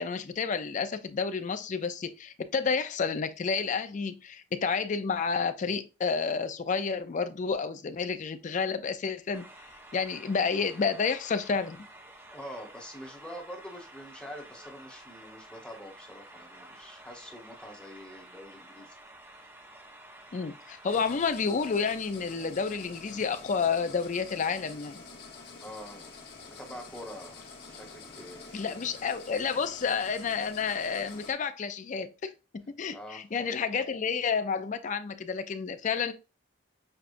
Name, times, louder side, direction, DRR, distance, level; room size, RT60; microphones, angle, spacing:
voice 1, 0.0-9.5 9.9-11.8 20.3-25.0 28.5-36.1, left 5 dB, 40° left, 0.4 m, -30 dB
sound 1, 9.3-21.1, right 1 dB, 10° right, 0.6 m, -51 dB
voice 2, 12.3-19.0 25.6-26.1 26.6-28.8 32.9-33.2, equal, 5° left, 1.0 m, -45 dB
sound 2, 20.9-31.3, left 4 dB, 60° left, 1.4 m, -47 dB
6.5 x 2.3 x 2.5 m
head